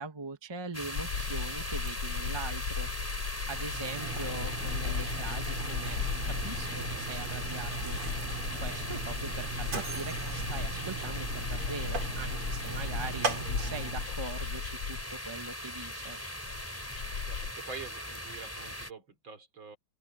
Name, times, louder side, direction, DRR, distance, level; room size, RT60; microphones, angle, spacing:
voice 1, 0.0-6.0 6.4-8.0 8.6-16.2, right 3 dB, 15° right, 1.4 m, -42 dB
sound 1, 0.7-18.9, equal, 5° left, 4.9 m, -40 dB
sound 2, 0.9-17.5, left 6 dB, 50° left, 1.4 m, -37 dB
Mechanisms, 3.4-14.2, right 3 dB, 85° right, 4.4 m, -38 dB
voice 2, 17.2-19.8, right 4 dB, 65° right, 4.1 m, -46 dB
open air
omnidirectional pair, 2.4 m